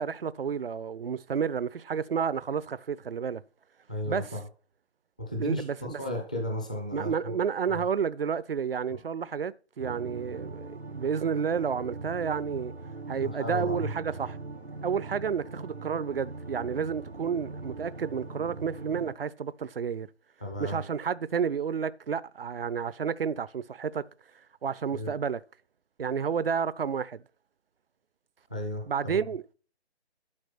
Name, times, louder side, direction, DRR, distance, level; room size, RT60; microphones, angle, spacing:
voice 1, 0.0-3.4 4.1-4.3 5.4-6.0 6.9-12.7 13.1-14.4 14.8-20.1 20.6-24.0 24.6-25.4 26.0-27.2 28.9-29.5, right 6 dB, 60° right, 0.6 m, -31 dB
voice 2, 3.9-4.4 5.2-7.3 7.7-7.8 8.9-9.0 13.2-13.9 20.4-20.8 24.9-25.1 28.5-29.2, left 1 dB, 10° left, 0.5 m, -34 dB
sound 1, 9.8-19.1, right 3 dB, 90° right, 1.9 m, -41 dB
12.0 x 4.8 x 5.9 m
figure-of-eight pair, 145°, 32 cm